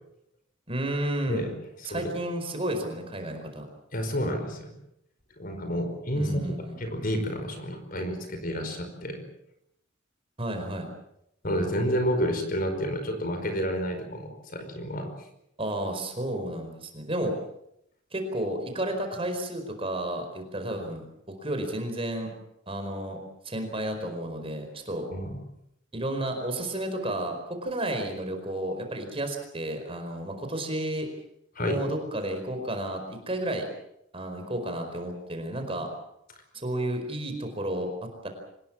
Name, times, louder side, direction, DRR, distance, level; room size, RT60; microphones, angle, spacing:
voice 1, 0.7-1.5 1.8-3.7 6.1-6.8 10.4-10.9 15.6-17.4 18.1-22.3 22.7-23.2 23.4-25.1 25.9-27.4 27.6-31.1 31.6-33.7 34.1-35.9 36.5-37.9 38.2-38.3, right 1 dB, 25° right, 5 dB, 4.8 m, -32 dB
voice 2, 3.9-4.7 5.4-6.4 6.8-9.2 11.4-15.1 25.1-25.4 31.5-31.8, equal, 45° left, 6 dB, 5.0 m, -30 dB
25.5 x 20.5 x 7.5 m, 0.79 s
head